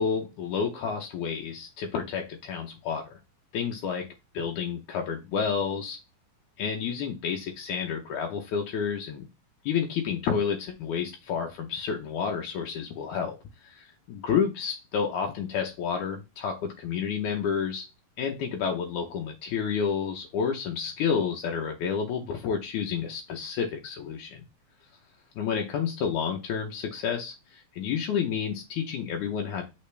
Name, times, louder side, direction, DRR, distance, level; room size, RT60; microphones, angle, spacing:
voice 1, 0.0-3.2 3.5-4.1 4.3-6.0 6.6-9.3 9.6-13.4 13.6-17.9 18.2-24.4 25.4-29.6, left 7 dB, 75° left, 2 dB, 2.2 m, -30 dB
6.9 x 5.0 x 3.3 m, 0.25 s
omnidirectional pair, 3.6 m